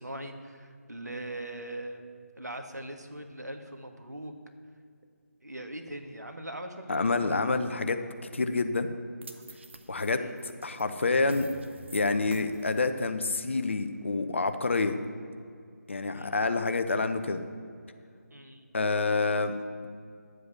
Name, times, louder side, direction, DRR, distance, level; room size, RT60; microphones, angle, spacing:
voice 1, 0.0-2.1 2.3-4.3 5.4-7.5 10.1-10.3 16.1-16.4 18.3-18.7, right 1 dB, 80° right, 5 dB, 1.6 m, -41 dB
voice 2, 6.9-8.0 8.3-8.9 9.9-11.5 11.9-15.0 15.9-17.4 18.7-19.5, left 3 dB, 45° left, 9 dB, 0.8 m, -28 dB
sound 1, 9.2-15.5, right 2 dB, 45° right, 0.9 m, -50 dB
11.0 x 8.0 x 6.5 m, 2.3 s
figure-of-eight pair, 155°, 9 cm